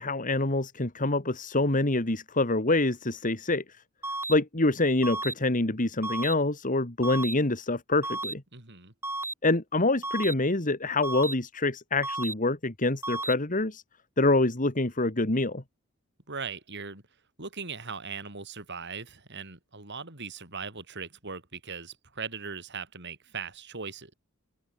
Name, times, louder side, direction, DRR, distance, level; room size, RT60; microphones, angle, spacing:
voice 1, 0.0-3.6 4.3-8.4 9.4-13.8 14.2-15.6, left 2 dB, 40° left, 2.3 m, -26 dB
sound 1, 4.0-4.3 5.0-5.3 6.0-6.3 7.0-7.3 8.0-8.3 9.0-9.3 10.0-10.3 11.0-11.3 12.0-12.3 13.0-13.3, right 2 dB, 10° right, 7.7 m, -33 dB
voice 2, 8.5-8.9 16.3-17.0 17.4-24.1, right 5 dB, 55° right, 5.6 m, -39 dB
open air
head